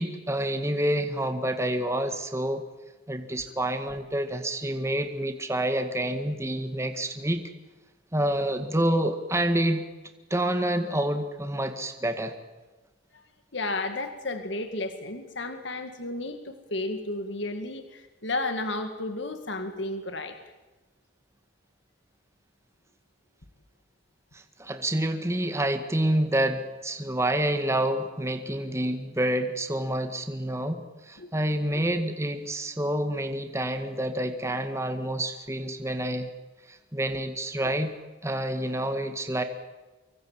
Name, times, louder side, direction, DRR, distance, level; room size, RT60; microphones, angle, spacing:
voice 1, 0.0-2.6 3.1-7.4 8.1-9.8 10.3-12.3 24.3-36.3 36.7-37.9 38.2-39.4, right 1 dB, 15° right, 7 dB, 1.8 m, -28 dB
voice 2, 13.5-20.4 31.2-31.3, left 2 dB, 60° left, 8 dB, 2.1 m, -32 dB
25.0 x 24.0 x 7.5 m, 1.2 s
head